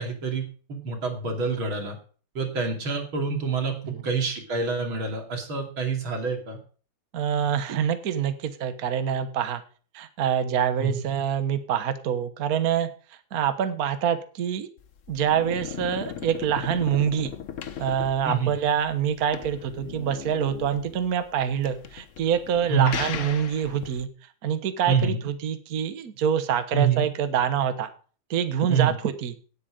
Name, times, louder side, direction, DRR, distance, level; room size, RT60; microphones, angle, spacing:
voice 1, 0.0-2.0 2.4-3.8 4.0-6.6 10.8-11.0 18.2-18.5 22.7-22.9 24.9-25.2 26.7-27.0 28.7-29.0, right 5 dB, 65° right, 2 dB, 3.6 m, -26 dB
voice 2, 7.1-9.6 9.9-12.9 13.3-14.7 15.1-17.3 17.8-24.1 24.4-27.9 28.3-29.3, right 8 dB, 50° right, 9 dB, 1.4 m, -26 dB
sound 1, 14.8-24.0, left 8 dB, 55° left, 0.8 m, -37 dB
17.5 x 8.3 x 5.1 m, 0.41 s
omnidirectional pair, 2.4 m